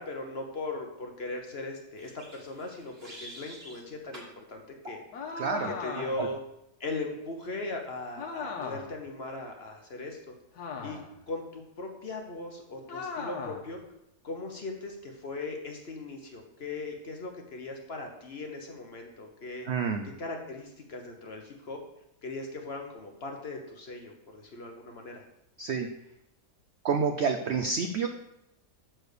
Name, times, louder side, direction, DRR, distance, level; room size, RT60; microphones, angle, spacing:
voice 1, 0.0-5.0 5.7-6.4 6.8-10.3 10.8-11.0 11.3-13.8 14.2-19.7 20.0-21.8 22.2-25.2, left 2 dB, 45° left, 3 dB, 1.0 m, -39 dB
sound 1, 2.0-3.8 4.1-4.3 4.8-5.0, equal, 35° right, 2.4 m, -47 dB
sound 2, 5.1-6.4 8.2-9.0 10.6-11.2 12.9-13.7, left 5 dB, 70° left, 1.5 m, -37 dB
voice 2, 5.4-5.7 6.2-6.3 19.7-20.0 25.6-25.9 26.8-28.1, right 5 dB, 65° right, 5 dB, 0.6 m, -28 dB
6.7 x 4.4 x 6.6 m, 0.83 s
omnidirectional pair, 1.8 m